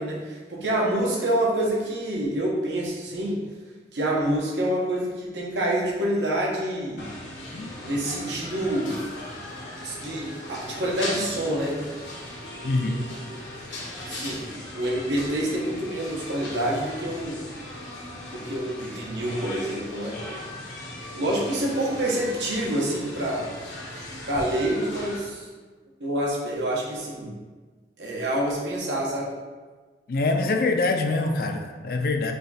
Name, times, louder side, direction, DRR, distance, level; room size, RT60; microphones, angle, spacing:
voice 1, 0.0-3.4 3.9-7.1 7.8-9.0 9.8-11.8 12.8-13.0 14.0-17.4 18.3-20.2 21.1-23.5 24.3-25.5 26.0-27.4 28.0-29.3, right 1 dB, 80° right, -3 dB, 1.0 m, -27 dB
sound 1, 7.0-25.2, left 1 dB, 80° left, 1.1 m, -38 dB
voice 2, 12.6-13.0 30.1-32.3, left 3 dB, 55° left, 5 dB, 0.4 m, -24 dB
5.2 x 2.3 x 4.0 m, 1.4 s
head